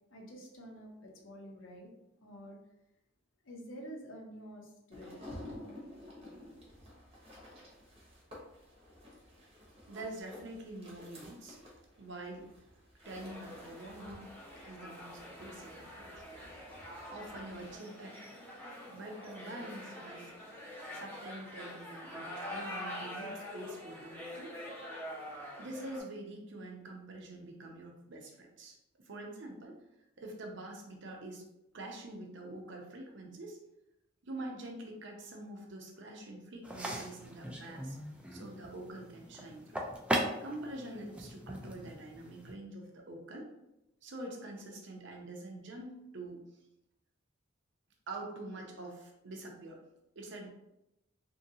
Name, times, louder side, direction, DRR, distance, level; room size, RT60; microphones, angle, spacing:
voice 1, 0.1-1.9 2.2-2.6 3.4-5.1, equal, 75° left, 0 dB, 0.7 m, -48 dB
sound 1, 4.9-17.7, left 1 dB, 30° right, 0.8 m, -52 dB
voice 2, 9.9-11.6 12.0-12.5 13.0-14.3 14.6-16.2 17.1-18.2 18.9-20.3 20.9-24.5 25.6-29.8 30.2-31.4 31.7-33.6 34.2-38.0 38.3-39.8 40.4-43.5 44.0-46.4 48.1-49.8 50.2-50.5, right 1 dB, 65° right, 1 dB, 0.6 m, -45 dB
sound 2, 13.0-26.0, left 1 dB, 10° left, 0.7 m, -45 dB
sound 3, 36.6-42.5, equal, 5° right, 0.3 m, -39 dB
2.7 x 2.6 x 2.7 m, 0.90 s
head